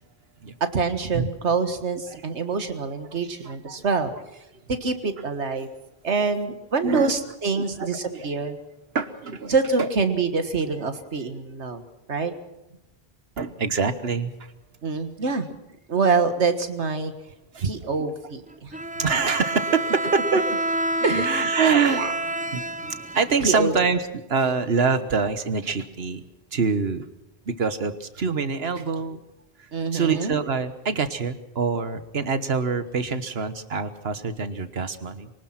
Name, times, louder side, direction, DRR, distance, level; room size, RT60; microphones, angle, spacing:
voice 1, 0.6-4.1 4.7-5.7 6.0-8.6 9.5-11.8 12.1-12.3 14.8-15.5 15.9-17.1 17.6-18.8 21.0-22.1 23.4-23.7 29.7-30.4, right 4 dB, 90° right, 9 dB, 1.9 m, -25 dB
voice 2, 3.4-3.8 6.8-7.2 7.5-8.3 8.9-9.9 13.4-14.3 17.5-18.1 19.0-20.5 21.0-22.0 22.5-22.6 23.1-26.2 26.5-27.1 27.5-29.2 29.6-35.3, right 5 dB, 65° right, 11 dB, 1.5 m, -25 dB
Bowed string instrument, 18.7-23.8, right 2 dB, 10° right, 0.5 m, -28 dB
24.0 x 18.5 x 6.0 m, 0.95 s
omnidirectional pair, 1.1 m